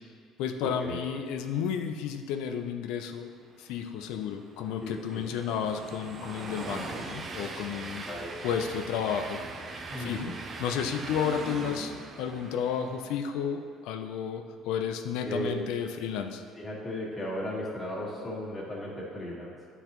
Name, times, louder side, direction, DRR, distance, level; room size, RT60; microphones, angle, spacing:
voice 1, 0.4-3.3 3.6-8.0 8.4-9.4 10.0-10.3 10.6-16.4, left 7 dB, 80° left, 6 dB, 0.5 m, -32 dB
Train, 4.0-13.4, right 3 dB, 30° right, 0.5 m, -41 dB
voice 2, 4.8-5.6 8.1-8.3 9.9-10.3 15.2-15.6 16.6-19.6, equal, 15° left, -6 dB, 1.5 m, -36 dB
10.0 x 4.0 x 3.0 m, 2.2 s
cardioid pair, 140°, 0 cm